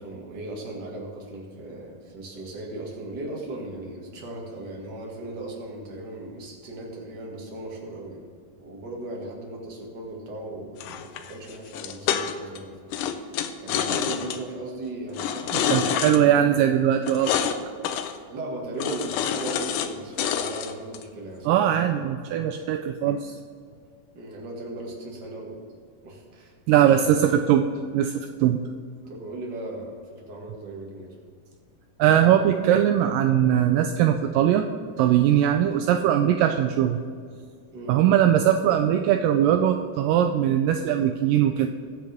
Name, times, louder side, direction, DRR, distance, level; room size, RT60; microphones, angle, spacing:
voice 1, 0.0-8.2 8.6-13.0 13.6-16.6 18.3-21.6 24.1-25.6 26.0-27.3 29.1-31.2 37.7-38.0, right 2 dB, 35° right, -2 dB, 2.2 m, -37 dB
sound 1, 10.8-12.6 12.9-14.4 15.1-16.2 17.1-17.6 17.8-18.2 18.8-19.9 20.2-21.0, left 8 dB, 75° left, 2.1 m, -27 dB
voice 2, 15.7-17.3 21.5-23.3 26.7-27.6 27.9-28.6 32.0-34.7 35.0-37.0 37.9-41.7, right 10 dB, 80° right, 6 dB, 2.1 m, -20 dB
22.0 x 7.7 x 3.6 m, 2.2 s
omnidirectional pair, 4.1 m